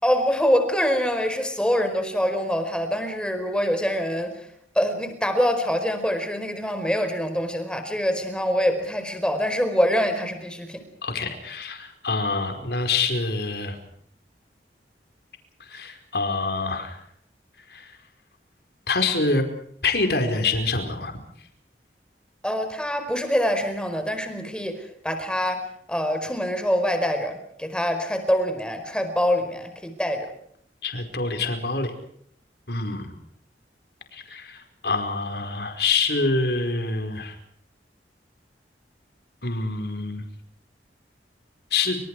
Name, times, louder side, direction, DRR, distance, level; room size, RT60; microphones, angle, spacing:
voice 1, 0.0-4.3 4.7-10.8 22.4-25.6 25.9-30.3, equal, 5° left, 7 dB, 4.7 m, -25 dB
voice 2, 11.0-13.7 15.7-16.9 17.7-17.9 18.9-19.4 19.8-21.1 30.8-31.9 32.7-33.1 34.1-34.6 34.8-37.3 39.4-40.2 41.7-42.0, left 3 dB, 65° left, 6 dB, 4.9 m, -26 dB
29.0 x 26.5 x 4.9 m, 0.68 s
head